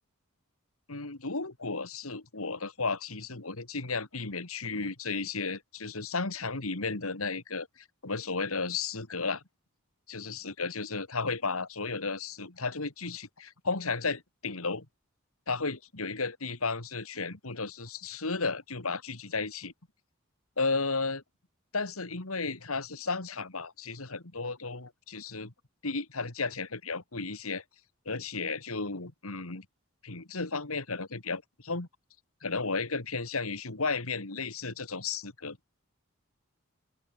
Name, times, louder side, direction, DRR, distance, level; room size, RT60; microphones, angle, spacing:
voice 1, 0.9-9.4 10.1-14.9 15.5-19.7 20.6-21.2 21.7-25.5 25.8-27.6 28.1-29.7 30.0-31.9 32.4-35.6, left 4 dB, 90° left, 2.6 m, -34 dB
open air
head